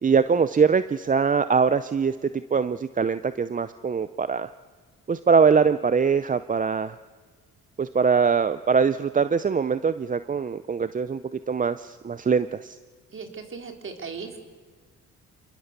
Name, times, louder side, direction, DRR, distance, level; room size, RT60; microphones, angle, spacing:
voice 1, 0.0-4.5 5.1-7.0 7.8-12.8, right 5 dB, 25° right, 13 dB, 0.6 m, -22 dB
voice 2, 13.1-14.4, right 5 dB, 40° right, 4 dB, 3.8 m, -37 dB
28.0 x 20.0 x 6.9 m, 1.5 s
cardioid pair, 90°, 30 cm